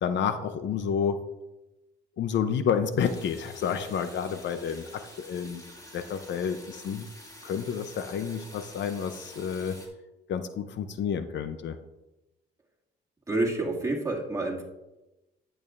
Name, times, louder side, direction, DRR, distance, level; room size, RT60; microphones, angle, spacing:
voice 1, 0.0-1.3 2.2-5.6 5.9-7.1 7.4-9.8 10.3-11.8, left 7 dB, 65° left, 10 dB, 0.6 m, -30 dB
sound 1, 3.0-9.9, left 1 dB, 20° left, 2.5 m, -48 dB
voice 2, 13.3-14.6, right 2 dB, 15° right, -3 dB, 2.2 m, -28 dB
10.5 x 8.9 x 2.5 m, 1.0 s
cardioid pair, 90°, 20 cm